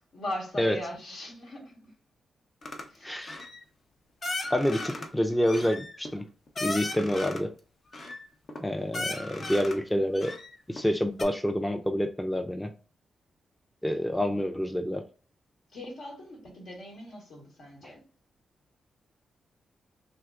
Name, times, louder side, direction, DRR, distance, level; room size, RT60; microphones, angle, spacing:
voice 1, 0.0-1.9 2.9-3.3 15.7-18.0, left 1 dB, 75° left, 1.3 m, -40 dB
sound 1, 2.6-2.9 3.2-3.6 4.2-5.1 5.4-7.5 7.9-8.6 8.9-9.8 10.1-10.9 11.2-11.3, left 2 dB, 55° left, 0.7 m, -36 dB
voice 2, 3.0-3.4 4.5-6.2 6.6-7.5 8.6-10.3 10.7-12.7 13.8-15.0 17.8-17.9, equal, 10° left, 0.4 m, -28 dB
2.8 x 2.2 x 3.5 m
supercardioid pair, 45°, 0 cm